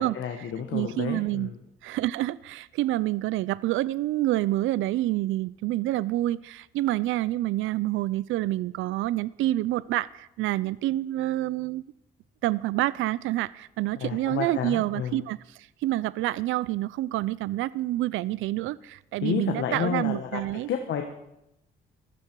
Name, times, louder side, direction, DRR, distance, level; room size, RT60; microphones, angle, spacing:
voice 1, 0.0-1.6 14.0-15.2 19.2-20.4 20.7-21.0, left 8 dB, 70° left, 4 dB, 1.3 m, -30 dB
voice 2, 0.7-1.5 1.8-11.8 12.4-20.7, right 15 dB, 80° right, 20 dB, 0.4 m, -28 dB
15.5 x 12.5 x 4.6 m, 0.86 s
cardioid pair, 90°, 20 cm